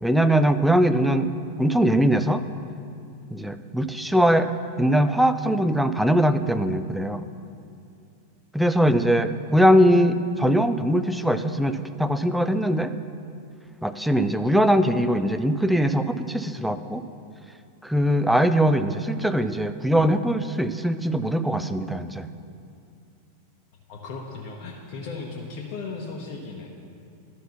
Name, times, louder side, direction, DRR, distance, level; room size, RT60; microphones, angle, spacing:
voice 1, 0.0-1.3 1.6-2.4 3.3-4.5 4.8-7.3 8.5-12.9 13.8-17.0 17.8-22.3, equal, ahead, 10 dB, 0.4 m, -21 dB
voice 2, 23.9-26.7, left 4 dB, 45° left, -1 dB, 0.9 m, -36 dB
11.5 x 5.5 x 5.7 m, 2.6 s
figure-of-eight pair, 90°, 0 cm